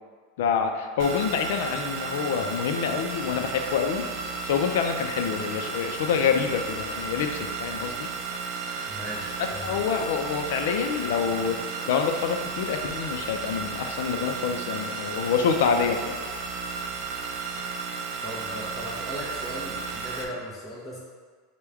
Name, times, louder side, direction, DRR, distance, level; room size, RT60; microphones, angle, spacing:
voice 1, 0.4-8.1 9.4-16.2, left 6 dB, 75° left, 5 dB, 0.4 m, -27 dB
sound 1, 1.0-20.2, right 4 dB, 50° right, 0.5 m, -33 dB
voice 2, 8.9-9.6 18.2-21.0, equal, ahead, -8 dB, 0.7 m, -37 dB
6.1 x 2.2 x 3.4 m, 1.6 s
supercardioid pair, 160°, 0 cm